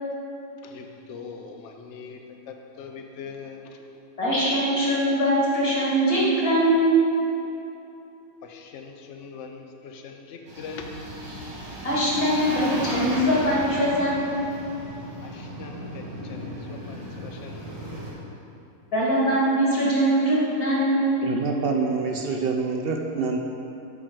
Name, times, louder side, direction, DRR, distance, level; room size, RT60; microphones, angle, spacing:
voice 1, 0.6-2.2 2.5-3.8 8.4-11.1 15.2-17.8, left 5 dB, 55° left, 3 dB, 1.0 m, -41 dB
voice 2, 4.2-7.0 11.8-14.4 18.9-21.2, right 1 dB, 75° left, -6 dB, 2.7 m, -22 dB
sound 1, 10.5-18.1, equal, 70° right, 2.3 m, -35 dB
voice 3, 21.2-23.4, right 4 dB, 55° right, 2 dB, 0.7 m, -26 dB
8.8 x 4.9 x 6.2 m, 2.8 s
omnidirectional pair, 1.6 m